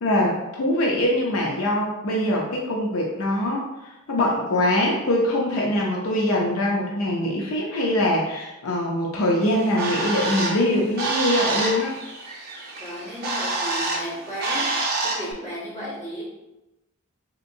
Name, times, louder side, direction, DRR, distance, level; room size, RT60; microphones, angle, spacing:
voice 1, 0.0-12.0, left 1 dB, 65° left, -2 dB, 0.5 m, -23 dB
Bird, 9.4-15.3, right 2 dB, 45° right, 0.6 m, -27 dB
voice 2, 12.8-14.8 15.0-16.2, equal, 10° left, -10 dB, 1.4 m, -34 dB
3.4 x 2.8 x 2.6 m, 0.99 s
head